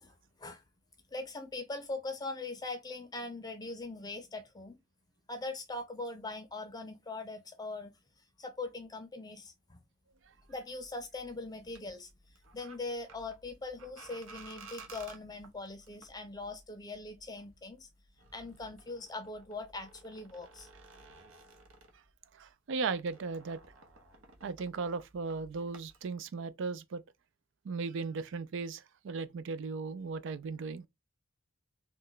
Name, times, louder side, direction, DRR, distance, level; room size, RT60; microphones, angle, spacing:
voice 1, 0.0-0.6 1.1-4.8 5.3-7.9 8.4-9.8 10.5-12.1 12.5-17.9 18.3-20.7, left 3 dB, 20° left, 0.5 m, -41 dB
sound 1, 10.1-22.5 22.7-26.1, right 3 dB, 85° right, 0.8 m, -56 dB
voice 2, 22.4-23.6 24.4-27.0 27.6-30.9, right 4 dB, 65° right, 0.4 m, -37 dB
3.2 x 2.2 x 3.8 m
head